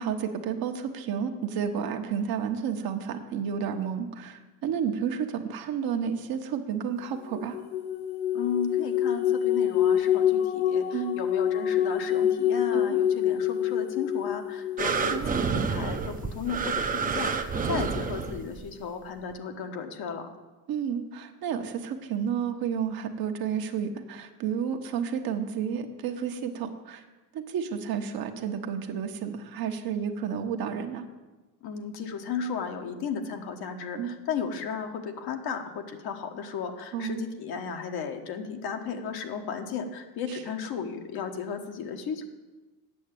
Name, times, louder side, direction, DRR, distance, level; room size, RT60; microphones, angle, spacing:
voice 1, 0.0-7.6 10.9-11.2 12.7-13.0 14.9-15.3 20.7-27.0 27.3-31.0 33.9-34.2 36.9-37.2 40.3-40.4, right 7 dB, 55° right, 5 dB, 1.2 m, -31 dB
sound 1, 7.3-15.1, left 10 dB, 80° left, 1.1 m, -26 dB
voice 2, 8.3-20.3 31.6-42.3, left 6 dB, 60° left, 5 dB, 1.4 m, -34 dB
sound 2, 14.8-18.7 19.3-19.4, right 5 dB, 20° right, 0.8 m, -29 dB
8.4 x 6.6 x 8.3 m, 1.2 s
supercardioid pair, 100°, 43 cm